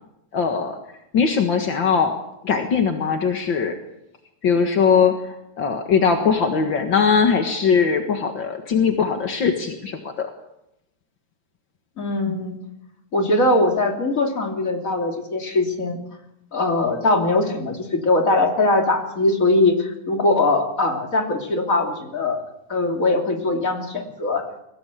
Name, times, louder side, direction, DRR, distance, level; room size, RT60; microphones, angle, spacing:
voice 1, 0.3-0.8 1.1-2.1 2.4-3.7 4.4-10.3, left 6 dB, 50° left, 4 dB, 1.4 m, -20 dB
voice 2, 12.0-12.6 13.1-16.0 16.5-22.4 22.7-24.4, left 2 dB, 25° left, 2 dB, 2.8 m, -21 dB
23.0 x 17.5 x 8.4 m, 0.86 s
omnidirectional pair, 4.5 m